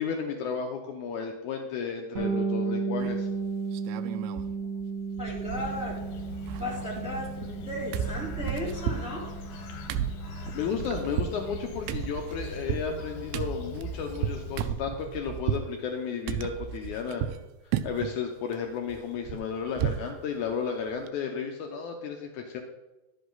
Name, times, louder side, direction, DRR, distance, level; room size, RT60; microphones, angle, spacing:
voice 1, 0.0-3.3 10.5-17.3 17.6-22.6, left 6 dB, 90° left, 3 dB, 1.7 m, -33 dB
Bass guitar, 2.1-11.8, right 5 dB, 25° right, 2.0 m, -35 dB
sound 1, 3.0-3.4 3.7-4.5 4.8-4.9 5.2-6.0 6.3-7.6 7.9-15.7 16.3-17.4 17.7-18.2 18.5-20.1 20.5-20.6 20.9-21.1, right 10 dB, 85° right, 2.5 m, -34 dB
Bird, 5.0-15.1, left 3 dB, 75° left, 2.7 m, -42 dB
voice 2, 5.2-6.0 6.5-9.3, left 1 dB, ahead, -7 dB, 3.0 m, -35 dB
11.5 x 7.9 x 3.9 m, 1.0 s
omnidirectional pair, 4.5 m